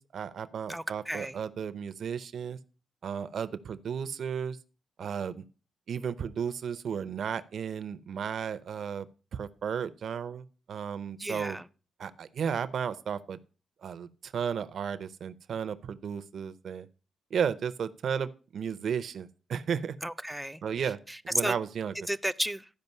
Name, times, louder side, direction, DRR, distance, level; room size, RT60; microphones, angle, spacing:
voice 1, 0.0-2.6 3.0-4.6 5.0-5.4 5.9-9.1 9.3-11.6 12.0-13.4 13.8-16.9 17.3-20.0 20.6-21.0 21.2-21.9, right 7 dB, 60° right, 0.6 m, -34 dB
voice 2, 0.7-1.4 11.2-11.7 20.0-20.6 21.1-21.6 22.1-22.7, right 1 dB, 5° right, 0.4 m, -33 dB
12.0 x 5.1 x 5.4 m
wide cardioid pair, 135°, 0 cm